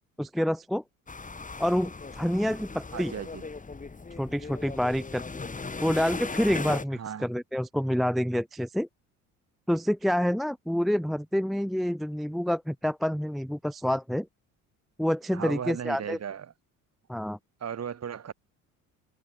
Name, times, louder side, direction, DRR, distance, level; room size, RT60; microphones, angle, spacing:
voice 1, 0.2-0.8 1.6-3.1 4.2-5.2 5.8-8.9 9.7-14.3 15.0-16.2 17.1-17.4, equal, ahead, 0.3 m, -27 dB
sound 1, 1.1-6.9, left 4 dB, 20° left, 2.5 m, -38 dB
voice 2, 2.9-3.5 6.9-7.3 15.3-16.5 17.6-18.3, right 8 dB, 35° right, 2.8 m, -36 dB
hypercardioid pair, 60°, 43 cm